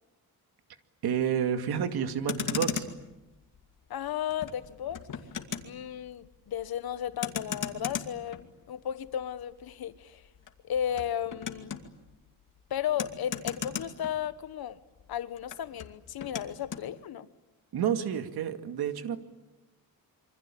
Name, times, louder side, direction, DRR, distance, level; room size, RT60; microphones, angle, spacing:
voice 1, 1.0-2.9 17.7-19.2, right 8 dB, 80° right, 2.3 m, -29 dB
Motor vehicle (road), 2.2-14.7 15.0-16.9, left 7 dB, 55° left, 2.4 m, -39 dB
voice 2, 3.9-5.0 5.6-10.2 10.6-11.7 12.7-14.8 15.1-17.3, left 10 dB, 75° left, 1.4 m, -34 dB
27.0 x 25.0 x 8.7 m
cardioid pair, 125°, 37 cm